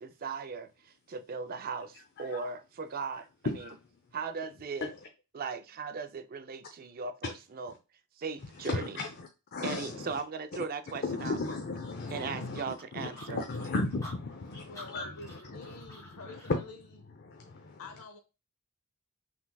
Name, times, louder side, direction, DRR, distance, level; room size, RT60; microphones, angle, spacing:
voice 1, 0.0-3.3 4.1-4.9 5.3-7.7 8.2-9.0 9.6-11.4 12.1-13.4, right 5 dB, 40° right, 0.4 m, -38 dB
voice 2, 1.9-2.5 3.4-3.7 4.8-4.9 7.2-7.3 7.7-7.8 8.5-10.2 11.0-16.6 17.1-17.8, left 3 dB, 45° left, 0.6 m, -36 dB
sound 1, 12.1-16.6, left 1 dB, 15° left, 1.7 m, -50 dB
voice 3, 14.6-16.7 17.8-18.2, left 3 dB, 85° left, 0.7 m, -48 dB
5.8 x 3.3 x 2.2 m
head